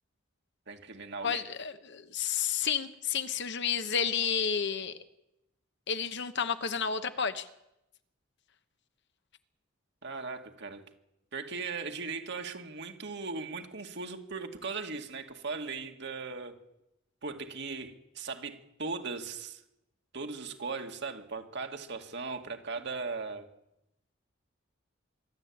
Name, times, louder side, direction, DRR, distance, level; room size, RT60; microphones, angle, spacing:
voice 1, 0.7-1.4 10.0-10.8 11.3-16.6 17.2-19.6 20.1-23.5, right 4 dB, 60° right, 4 dB, 2.1 m, -38 dB
voice 2, 1.2-5.0 5.9-7.5, left 7 dB, 60° left, 10 dB, 1.1 m, -31 dB
25.0 x 12.0 x 8.7 m, 0.88 s
head